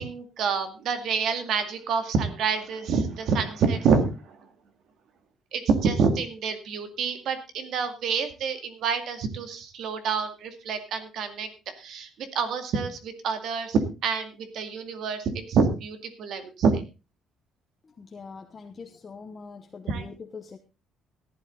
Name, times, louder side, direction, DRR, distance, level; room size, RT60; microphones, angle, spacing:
voice 1, 0.0-4.5 5.5-11.5 11.8-16.8 19.9-20.1, right 5 dB, 55° right, 9 dB, 2.2 m, -27 dB
voice 2, 17.8-20.6, left 5 dB, 25° left, 5 dB, 1.0 m, -43 dB
14.5 x 11.0 x 3.8 m, 0.29 s
cardioid pair, 170°, 0 cm